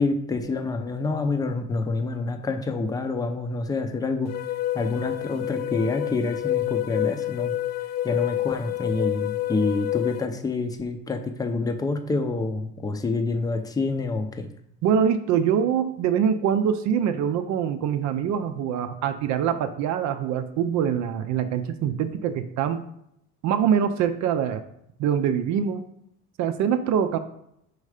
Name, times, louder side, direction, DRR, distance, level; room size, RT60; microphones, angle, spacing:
voice 1, 0.0-4.3 4.7-7.5 8.0-14.5, left 3 dB, 10° left, 6 dB, 0.6 m, -27 dB
sound 1, 4.3-10.3, left 14 dB, 55° left, 0.5 m, -28 dB
voice 2, 14.8-22.9 23.4-24.6 25.0-25.8 26.4-27.2, right 8 dB, 60° right, 9 dB, 0.6 m, -24 dB
5.4 x 4.7 x 4.9 m, 0.76 s
cardioid pair, 125°, 32 cm